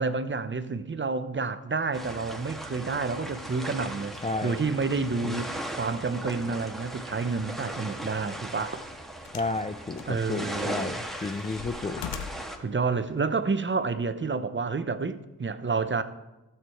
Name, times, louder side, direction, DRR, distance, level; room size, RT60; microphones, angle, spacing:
voice 1, 0.0-4.1 4.4-8.8 10.1-11.0 12.6-16.0, right 4 dB, 25° right, 0.9 m, -29 dB
sound 1, 1.9-12.6, right 1 dB, ahead, 1.8 m, -38 dB
voice 2, 4.2-4.5 5.2-5.4 9.3-12.0, left 3 dB, 15° left, 0.5 m, -32 dB
sound 2, 8.1-8.3 9.3-9.6 10.0-10.7 11.1-12.6 13.5-13.6, left 8 dB, 75° left, 0.8 m, -40 dB
12.5 x 8.1 x 4.5 m
supercardioid pair, 45°, 43 cm